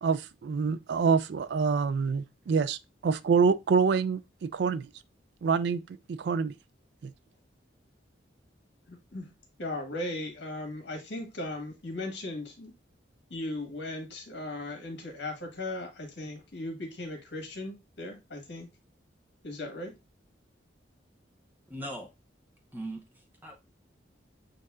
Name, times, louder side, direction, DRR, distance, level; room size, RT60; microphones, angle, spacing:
voice 1, 0.0-4.9 5.4-5.8 6.1-6.5 7.0-7.1, right 5 dB, 65° right, 0.3 m, -26 dB
voice 2, 8.9-9.3 9.6-12.7 13.3-18.7 19.4-19.9, left 2 dB, 65° left, 1.5 m, -37 dB
voice 3, 21.7-22.1 22.7-23.6, right 1 dB, 10° right, 0.8 m, -40 dB
7.5 x 2.7 x 2.3 m
head